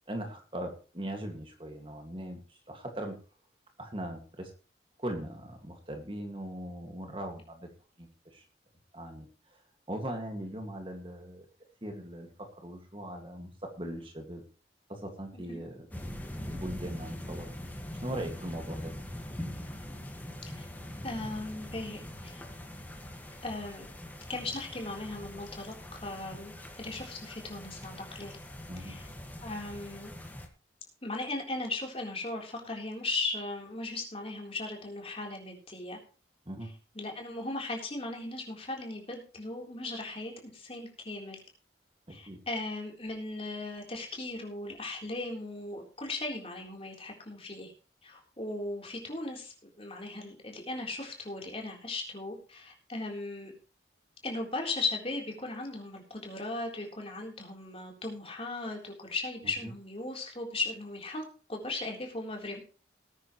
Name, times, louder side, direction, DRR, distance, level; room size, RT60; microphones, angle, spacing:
voice 1, 0.1-3.2 3.8-4.5 5.0-7.7 8.0-8.4 8.9-9.3 9.9-11.5 11.8-14.4 14.9-16.2 16.5-17.5 18.0-18.9 28.7-28.9 36.5-36.7 42.1-42.4, right 1 dB, 30° right, 4 dB, 2.1 m, -40 dB
sound 1, 15.9-30.5, left 1 dB, 10° left, 1.7 m, -43 dB
voice 2, 21.0-22.4 23.4-23.9 24.3-25.7 26.0-28.4 28.8-29.0 29.4-30.1 31.0-36.0 36.6-41.4 42.1-47.7 48.0-53.5 54.2-61.2 61.5-62.6, left 2 dB, 30° left, 1 dB, 3.8 m, -37 dB
19.0 x 9.7 x 3.2 m, 0.36 s
head